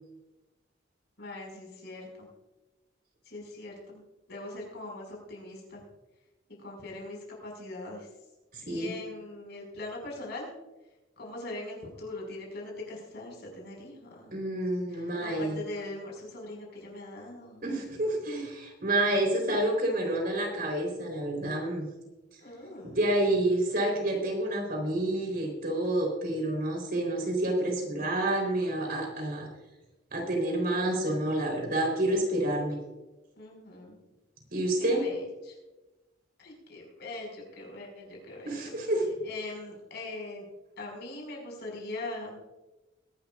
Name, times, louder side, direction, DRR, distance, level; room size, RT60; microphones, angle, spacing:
voice 1, 1.2-2.3 3.2-4.0 4.3-5.8 6.5-8.1 8.7-10.5 11.2-14.5 14.9-17.7 22.4-23.1 33.4-34.0 34.8-35.6 36.4-38.9 39.2-40.5 40.8-42.4, left 2 dB, 60° left, -1 dB, 5.4 m, -41 dB
voice 2, 8.5-8.9 14.3-15.6 17.6-21.9 22.8-29.5 30.1-32.8 34.5-35.1 38.5-39.1, right 1 dB, 50° right, 1 dB, 3.8 m, -28 dB
22.0 x 12.0 x 2.4 m, 1.1 s
head